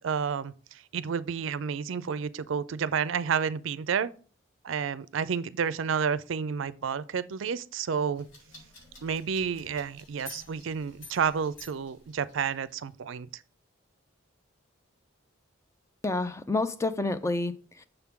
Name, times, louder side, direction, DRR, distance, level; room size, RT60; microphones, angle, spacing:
voice 1, 0.0-4.1 4.6-8.3 9.0-13.4, right 6 dB, 70° right, 0.4 m, -30 dB
sound 1, 8.1-12.7, left 2 dB, 80° left, 4.0 m, -50 dB
voice 2, 16.0-17.8, left 2 dB, 15° left, 0.4 m, -29 dB
6.8 x 3.6 x 5.8 m
head